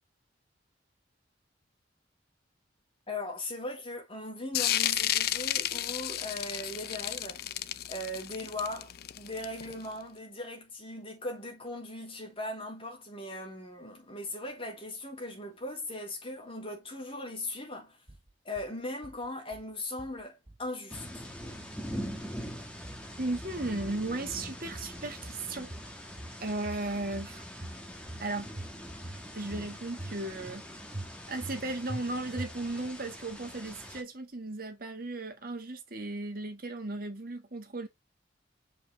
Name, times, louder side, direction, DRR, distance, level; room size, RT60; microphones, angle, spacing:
voice 1, 3.1-7.4 7.9-18.0 18.4-21.2, left 1 dB, 30° left, 3.0 m, -39 dB
sound 1, 4.5-9.9, left 12 dB, 55° left, 0.4 m, -32 dB
sound 2, 18.1-18.7 19.0-19.7 20.0-20.7 20.9-21.6 21.9-22.6 22.8-23.5 23.8-24.5 24.7-25.4 25.7-26.4 26.6-27.3 27.6-28.3 28.6-29.2 29.5-30.2 30.4-30.6 30.9-31.6 31.9-32.0 32.4-32.9, right 1 dB, 30° right, 1.1 m, -43 dB
sound 3, 20.9-34.0, equal, 5° left, 1.5 m, -43 dB
voice 2, 23.2-25.7 26.4-27.5 28.2-28.5 29.3-30.6 31.3-37.9, right 2 dB, 50° right, 1.8 m, -36 dB
6.5 x 5.1 x 3.4 m
head